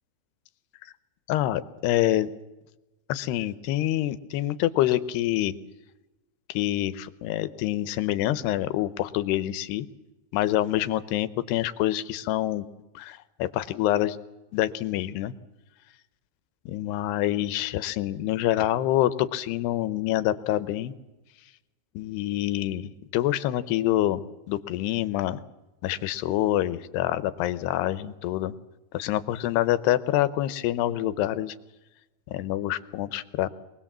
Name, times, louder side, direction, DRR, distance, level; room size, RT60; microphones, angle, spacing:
voice 1, 1.3-2.3 3.1-5.5 6.5-9.9 10.3-12.7 13.0-14.2 14.5-15.3 16.7-20.9 21.9-24.2 24.5-25.4 25.8-28.5 28.9-31.6 32.3-33.5, left 14 dB, 80° left, 14 dB, 2.9 m, -26 dB
23.5 x 20.0 x 7.4 m, 1.1 s
omnidirectional pair, 4.7 m